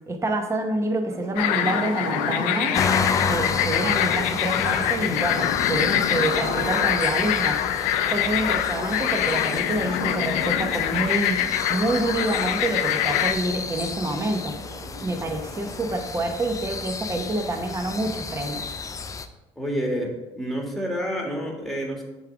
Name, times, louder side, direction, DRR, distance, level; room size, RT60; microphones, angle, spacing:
voice 1, 0.1-2.8 3.3-7.6 8.1-11.4 11.7-14.6 15.0-18.7, right 2 dB, 20° right, 4 dB, 0.9 m, -27 dB
Church bell, 1.0-16.0, right 3 dB, 60° right, 1.8 m, -39 dB
sound 1, 1.4-13.3, left 11 dB, 80° left, 0.5 m, -24 dB
sound 2, 2.7-19.3, left 5 dB, 25° left, 0.5 m, -32 dB
voice 2, 19.6-22.0, equal, ahead, 0 dB, 1.8 m, -28 dB
7.2 x 3.7 x 4.8 m, 1.0 s
supercardioid pair, 90°, 13 cm